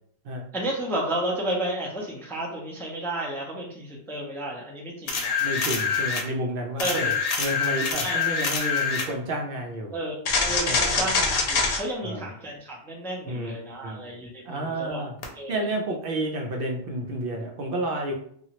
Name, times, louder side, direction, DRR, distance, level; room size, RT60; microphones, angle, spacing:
voice 1, 0.5-5.4 6.8-7.1 8.0-8.2 9.9-15.1 15.3-15.7, right 1 dB, 5° left, -2 dB, 0.4 m, -32 dB
sound 1, 5.1-6.3 6.8-9.1 10.2-11.8 15.2-15.3, left 4 dB, 70° left, 0.8 m, -25 dB
voice 2, 5.4-7.1 7.4-9.9 10.6-11.1 12.0-12.3 13.3-13.5 13.8-14.1 14.4-15.1 15.5-18.1, right 1 dB, 65° right, 1 dB, 0.7 m, -30 dB
2.9 x 2.4 x 2.8 m, 0.64 s
omnidirectional pair, 1.1 m